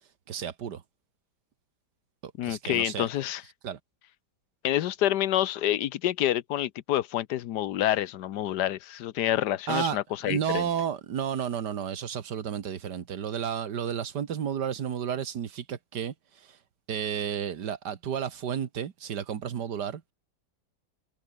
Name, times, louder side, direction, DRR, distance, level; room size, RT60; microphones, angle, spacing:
voice 1, 0.3-0.8 2.2-3.1 3.6-3.8 9.7-10.0 10.2-16.6 16.9-20.0, right 8 dB, 90° right, 2.0 m, -32 dB
voice 2, 2.4-3.4 4.6-10.7, left 12 dB, 85° left, 1.4 m, -28 dB
omnidirectional pair, 1.8 m